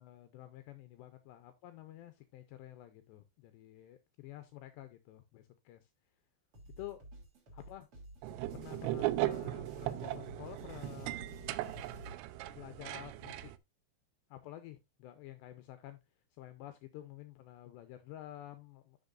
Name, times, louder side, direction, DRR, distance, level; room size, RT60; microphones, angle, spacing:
voice 1, 0.0-5.9 6.8-7.0 7.5-7.9 8.5-11.3 12.5-13.5 14.3-16.0 16.3-19.0, left 14 dB, 85° left, 2.5 m, -50 dB
sound 1, 6.5-12.2, right 1 dB, 35° right, 3.1 m, -51 dB
sound 2, 8.2-13.6, right 17 dB, 85° right, 2.6 m, -38 dB
12.0 x 6.0 x 2.5 m
omnidirectional pair, 5.8 m